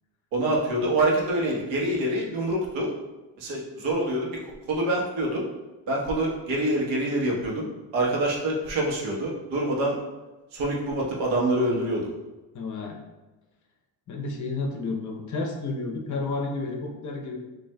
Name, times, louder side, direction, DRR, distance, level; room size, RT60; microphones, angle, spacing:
voice 1, 0.3-2.9 3.4-4.3 4.7-5.4 5.9-7.7 7.9-10.0 10.5-12.1, right 1 dB, 80° right, -2 dB, 1.1 m, -26 dB
voice 2, 12.5-13.0 14.1-17.4, left 3 dB, 40° left, 2 dB, 0.7 m, -31 dB
6.1 x 2.6 x 2.2 m, 1.1 s
cardioid pair, 105°, 46 cm